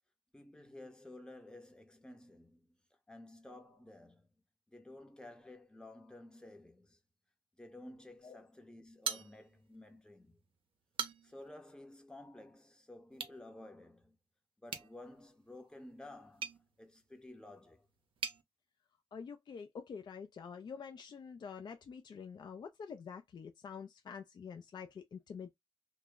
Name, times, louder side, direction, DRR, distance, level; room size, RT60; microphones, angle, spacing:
voice 1, 0.3-2.7 3.1-4.3 4.7-7.0 7.6-10.4 11.2-14.2 14.6-16.5 16.8-17.9, left 1 dB, 10° left, 0.7 m, -53 dB
sound 1, 9.0-9.8 10.2-10.3 10.7-11.5 13.1-13.4 14.7-18.4, right 7 dB, 65° right, 0.5 m, -43 dB
voice 2, 19.1-25.5, left 6 dB, 50° left, 0.4 m, -47 dB
2.1 x 2.0 x 3.4 m
cardioid pair, 70°, 9 cm